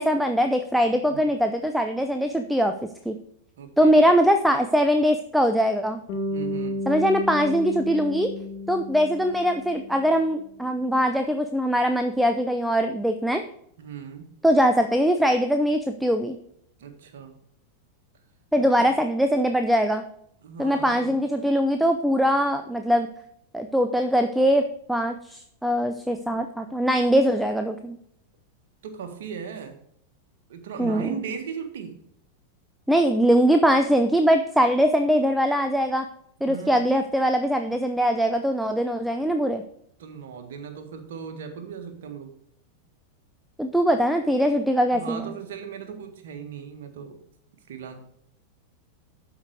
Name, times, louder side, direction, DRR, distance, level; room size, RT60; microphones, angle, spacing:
voice 1, 0.0-2.7 3.1-3.2 3.8-6.0 6.9-8.3 8.7-13.4 14.4-16.4 18.5-20.0 20.6-23.1 23.5-28.0 30.8-31.2 32.9-36.1 36.4-39.6 43.6-45.3, equal, ahead, 7 dB, 0.6 m, -22 dB
voice 2, 3.6-4.0 6.3-6.8 13.8-14.3 16.8-17.3 18.6-18.9 20.4-21.2 28.8-29.8 30.5-32.0 36.4-36.9 40.0-42.3 44.9-47.2 47.7-47.9, right 7 dB, 55° right, 5 dB, 1.6 m, -37 dB
Bass guitar, 6.1-10.4, left 1 dB, 45° left, 2.0 m, -32 dB
12.0 x 5.2 x 4.8 m, 0.71 s
figure-of-eight pair, 90°, 0 cm